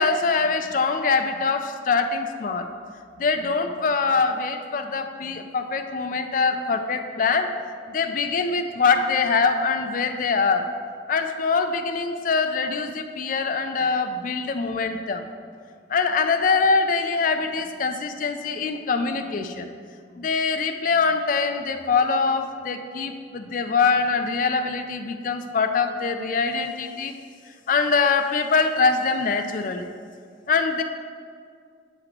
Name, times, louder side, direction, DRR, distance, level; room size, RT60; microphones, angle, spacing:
voice 1, 0.0-2.7 3.2-7.5 7.9-10.7 11.1-15.3 15.9-19.7 20.2-27.1 27.7-29.9 30.5-30.8, left 4 dB, 45° left, 6 dB, 0.4 m, -23 dB
7.9 x 2.9 x 5.9 m, 2.1 s
head